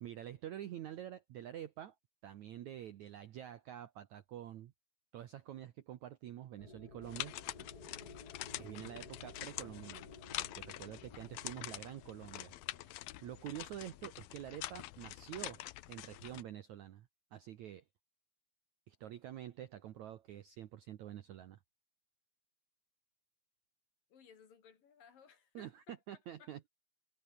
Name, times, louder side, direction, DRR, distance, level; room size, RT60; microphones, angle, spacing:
voice 1, 0.0-2.0 2.2-4.7 5.1-7.3 8.6-10.0 10.4-15.6 15.9-17.8 18.9-21.6 25.5-26.7, right 11 dB, 70° right, 1.8 m, -47 dB
sound 1, 6.6-14.7, left 2 dB, 20° left, 5.6 m, -56 dB
sound 2, 7.0-16.4, left 17 dB, 75° left, 2.5 m, -46 dB
voice 2, 24.1-26.0 26.4-26.5, left 7 dB, 60° left, 4.7 m, -61 dB
omnidirectional pair, 4.6 m